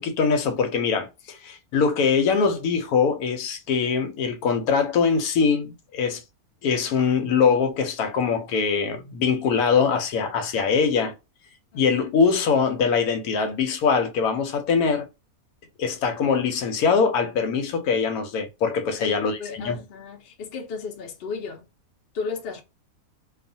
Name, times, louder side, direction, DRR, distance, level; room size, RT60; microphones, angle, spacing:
voice 1, 0.0-6.2 6.6-11.1 11.7-15.1 15.8-19.8, left 5 dB, 85° left, 1.1 m, -23 dB
voice 2, 19.0-21.6 22.1-22.6, left 5 dB, 50° left, 0.8 m, -34 dB
2.4 x 2.3 x 2.6 m
omnidirectional pair, 1.5 m